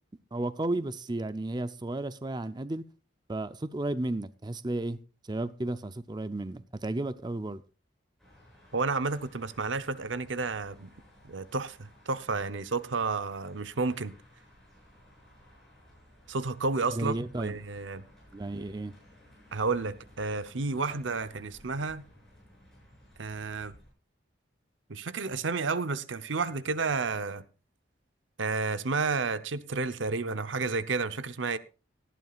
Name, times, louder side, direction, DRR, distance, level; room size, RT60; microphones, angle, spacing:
voice 1, 0.3-2.8 3.3-5.0 5.3-7.6 16.9-17.6 18.3-18.9, right 2 dB, 20° right, 0.5 m, -33 dB
sound 1, 8.2-23.9, equal, ahead, 7.5 m, -57 dB
voice 2, 8.7-10.9 11.2-14.1 16.3-18.0 19.5-22.0 23.2-23.7 24.9-27.4 28.4-31.6, right 4 dB, 80° right, 0.8 m, -31 dB
18.0 x 12.5 x 2.4 m
head